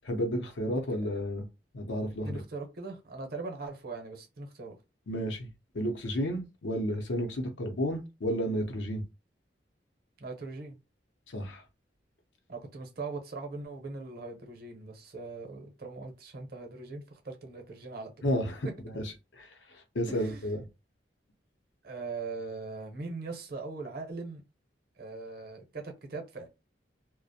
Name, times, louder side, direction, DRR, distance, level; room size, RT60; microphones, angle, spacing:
voice 1, 0.0-1.5 1.7-2.4 5.1-5.5 5.7-9.0 11.3-11.6 18.2-18.7 19.0-20.6, equal, 85° left, 0.6 m, -32 dB
voice 2, 2.1-4.8 10.2-10.8 12.5-18.3 20.1-20.4 21.8-24.4 25.0-26.5, right 3 dB, 55° right, 0.7 m, -40 dB
2.4 x 2.1 x 2.7 m
head